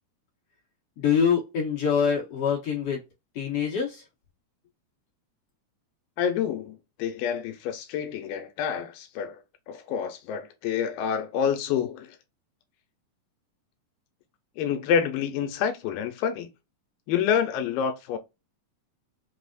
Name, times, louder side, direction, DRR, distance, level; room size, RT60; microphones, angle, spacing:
voice 1, 1.0-3.0 3.3-4.0, left 7 dB, 60° left, 1.6 m, -25 dB
voice 2, 6.2-9.4 9.7-12.2 14.6-16.5 17.1-18.2, left 8 dB, 85° left, 2.4 m, -28 dB
5.5 x 2.0 x 2.4 m
omnidirectional pair, 4.0 m